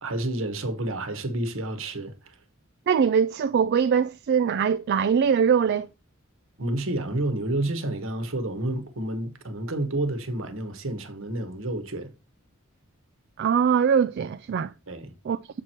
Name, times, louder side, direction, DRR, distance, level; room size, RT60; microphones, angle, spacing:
voice 1, 0.0-2.3 6.6-12.1 14.9-15.1, right 1 dB, 65° right, 1.2 m, -30 dB
voice 2, 2.9-5.9 13.4-14.7 15.2-15.4, right 7 dB, 50° right, 0.3 m, -22 dB
7.3 x 4.5 x 4.4 m
head